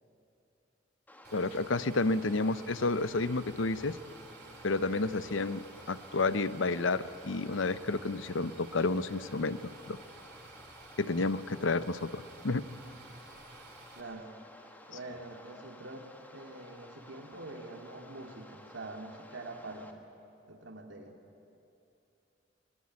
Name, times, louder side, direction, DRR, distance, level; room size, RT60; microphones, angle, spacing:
sound 1, 1.1-19.9, left 1 dB, 10° left, 1.6 m, -54 dB
sound 2, 1.2-14.0, right 3 dB, 55° right, 3.1 m, -53 dB
voice 1, 1.3-4.0 4.6-5.6 5.9-9.6 9.9-10.0 11.0-12.7, left 3 dB, 90° left, 14 dB, 0.8 m, -30 dB
voice 2, 14.0-14.3 14.9-20.0 20.5-21.2, right 2 dB, 75° right, 3 dB, 2.7 m, -45 dB
23.5 x 21.0 x 9.6 m, 2.8 s
head